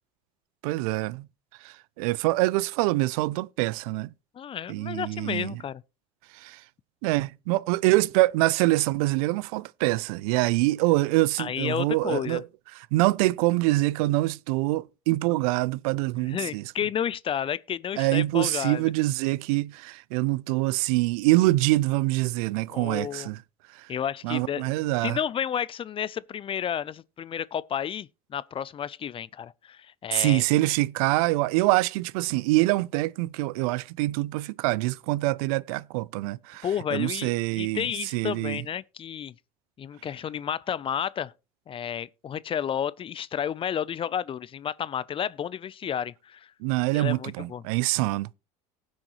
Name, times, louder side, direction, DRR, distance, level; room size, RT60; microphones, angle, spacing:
voice 1, 0.6-1.3 1.6-4.1 4.7-5.5 6.3-6.6 7.0-12.4 12.8-16.6 18.0-23.4 23.7-23.9 24.2-25.2 30.1-37.9 38.1-38.6 46.6-48.3, right 19 dB, 75° right, 0.4 m, -25 dB
voice 2, 4.3-5.8 11.4-12.4 16.3-18.9 22.7-23.3 23.9-24.6 25.0-30.4 36.6-39.3 39.8-41.3 41.7-46.5 46.9-47.6, left 9 dB, 30° left, 0.4 m, -31 dB
18.5 x 6.3 x 3.0 m
supercardioid pair, 95°, 18 cm